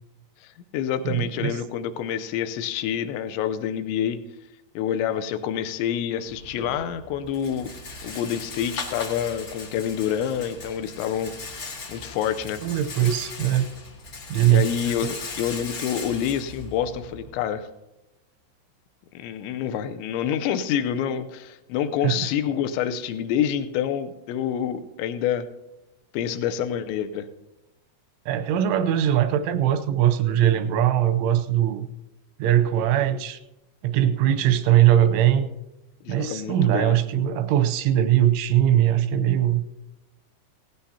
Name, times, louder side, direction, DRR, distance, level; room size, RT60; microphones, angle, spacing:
voice 1, 0.4-4.2 4.8-7.7 8.0-11.6 11.9-12.6 14.4-17.7 19.1-25.5 26.1-27.3 36.0-37.0, left 9 dB, 80° left, 10 dB, 2.9 m, -27 dB
voice 2, 1.0-1.6 12.6-13.7 14.3-14.7 22.0-22.3 28.3-31.9 32.4-33.4 33.8-35.5 36.1-39.6, right 11 dB, 90° right, 10 dB, 3.2 m, -21 dB
Rattle, 6.3-17.3, left 3 dB, 55° left, 1.4 m, -38 dB
18.0 x 16.0 x 2.8 m, 0.98 s
omnidirectional pair, 5.4 m